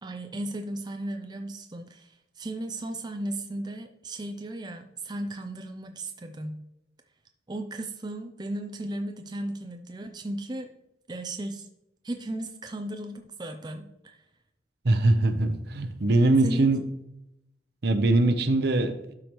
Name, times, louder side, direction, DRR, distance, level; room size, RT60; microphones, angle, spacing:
voice 1, 0.0-2.1 2.4-6.6 7.5-10.7 11.1-11.7 12.0-14.2 16.4-16.7, right 1 dB, 25° right, 5 dB, 0.5 m, -35 dB
voice 2, 14.8-16.8 17.8-18.9, right 2 dB, 60° right, 9 dB, 0.8 m, -22 dB
12.0 x 5.0 x 3.1 m, 0.87 s
head